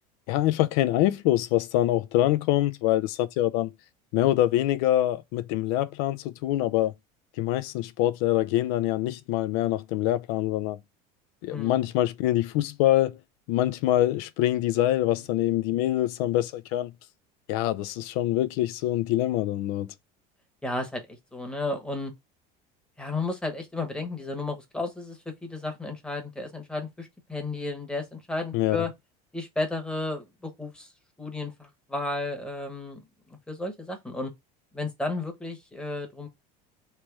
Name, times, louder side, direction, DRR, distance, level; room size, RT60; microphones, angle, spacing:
voice 1, 0.3-3.7 4.1-6.9 7.4-10.8 11.4-13.2 13.5-16.9 17.5-19.9 28.5-28.8, left 14 dB, 75° left, 0.5 m, -25 dB
voice 2, 11.5-11.9 20.6-22.1 23.0-28.9 29.3-30.9 31.2-33.0 33.5-34.3 34.7-36.3, left 2 dB, 5° left, 1.0 m, -33 dB
3.3 x 3.0 x 4.7 m
cardioid pair, 140°, 20 cm